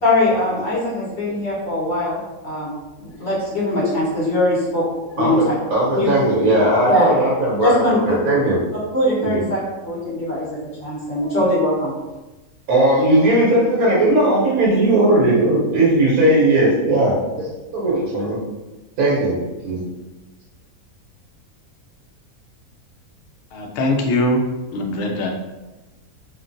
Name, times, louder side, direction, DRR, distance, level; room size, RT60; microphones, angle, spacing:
voice 1, 0.0-5.5 5.9-6.1 6.9-7.0 7.6-8.1 8.9-10.4 10.8-11.9, left 1 dB, 45° left, -8 dB, 1.4 m, -21 dB
voice 2, 5.2-8.6 9.2-9.4 12.7-17.5 17.7-18.4 19.0-19.4 19.6-19.8, right 1 dB, 80° right, -5 dB, 1.2 m, -17 dB
voice 3, 23.5-24.4 24.7-25.3, left 1 dB, 80° left, 1 dB, 0.5 m, -21 dB
3.1 x 2.4 x 2.6 m, 1.1 s
omnidirectional pair, 1.6 m